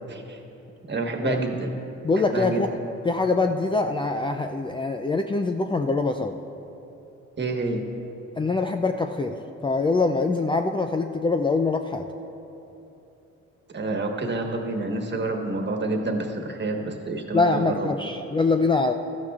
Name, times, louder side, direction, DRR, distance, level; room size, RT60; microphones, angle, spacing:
voice 1, 0.9-1.7 2.1-2.6 7.4-7.8 13.7-17.9, right 2 dB, 35° right, 3 dB, 1.4 m, -28 dB
voice 2, 2.0-2.7 3.1-6.4 8.4-12.0 17.3-18.9, left 3 dB, 15° left, 5 dB, 0.4 m, -24 dB
16.5 x 13.0 x 2.4 m, 3.0 s
cardioid pair, 90°, 30 cm